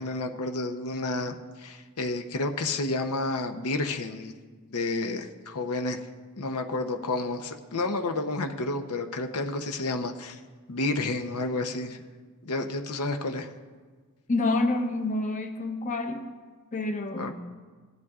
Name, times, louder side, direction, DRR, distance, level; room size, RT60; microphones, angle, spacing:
voice 1, 0.0-4.3 4.7-6.0 6.4-10.4 10.7-12.0 12.4-13.5 17.2-17.3, left 2 dB, 80° left, 5 dB, 0.8 m, -30 dB
voice 2, 14.3-16.3 16.7-17.3, left 2 dB, 35° left, 5 dB, 0.7 m, -28 dB
18.0 x 10.5 x 2.4 m, 1.4 s
head